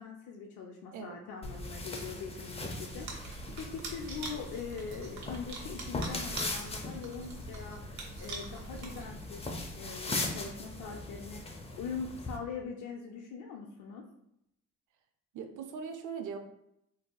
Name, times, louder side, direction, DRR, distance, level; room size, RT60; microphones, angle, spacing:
voice 1, 0.0-7.8 8.2-9.4 9.7-11.5 11.7-14.0, left 5 dB, 75° left, 1 dB, 0.5 m, -42 dB
sound 1, 1.4-12.4, left 2 dB, 20° left, 0.5 m, -40 dB
sound 2, 2.8-9.4, right 3 dB, 65° right, 0.9 m, -44 dB
voice 2, 15.3-16.4, right 6 dB, 85° right, 5 dB, 0.5 m, -40 dB
4.0 x 2.6 x 2.2 m, 0.78 s
cardioid pair, 90°, 30 cm